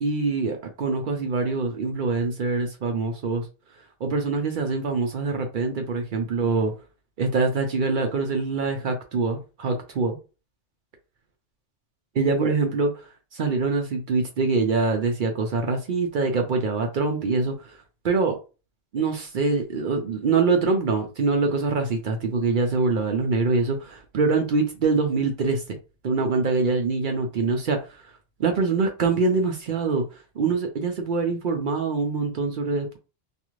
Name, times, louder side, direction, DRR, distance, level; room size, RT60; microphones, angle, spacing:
voice 1, 0.0-3.5 4.0-6.7 7.2-10.2 12.2-17.8 18.0-18.4 18.9-25.8 26.0-28.0 28.4-33.0, right 4 dB, 60° right, 0.6 m, -24 dB
2.4 x 2.4 x 3.0 m
omnidirectional pair, 1.2 m